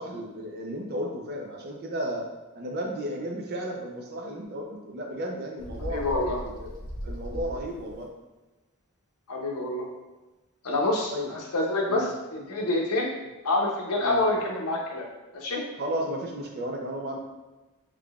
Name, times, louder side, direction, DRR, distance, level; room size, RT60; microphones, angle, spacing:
voice 1, 0.0-2.3 2.6-6.0 6.4-6.7 7.0-8.1 11.1-11.3 11.9-12.1 14.0-14.2 15.8-17.2, equal, 45° right, 1 dB, 0.5 m, -33 dB
Bird, 5.6-8.0, equal, 40° left, 0.5 m, -37 dB
voice 2, 5.9-6.4 9.3-9.9 10.6-13.1 13.4-15.1 15.3-15.6, left 2 dB, 80° left, -2 dB, 0.7 m, -27 dB
3.7 x 3.1 x 2.3 m, 1.1 s
head